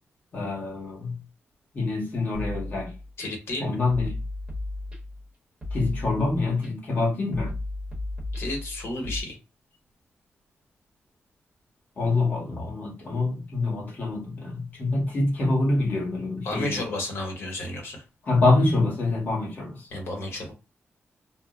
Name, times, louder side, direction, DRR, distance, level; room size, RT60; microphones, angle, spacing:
voice 1, 0.3-1.2 1.7-2.9 3.6-4.1 5.7-7.6 12.0-16.8 18.3-19.9, left 2 dB, 45° left, 1.1 m, -25 dB
sound 1, 2.3-3.3 3.9-5.2 5.6-6.7 7.3-9.2, left 2 dB, 25° right, 0.9 m, -34 dB
voice 2, 3.2-3.8 8.3-9.4 16.4-18.0 19.9-20.5, left 1 dB, 70° left, 1.1 m, -32 dB
2.4 x 2.0 x 3.6 m
wide cardioid pair, 180°, 4 cm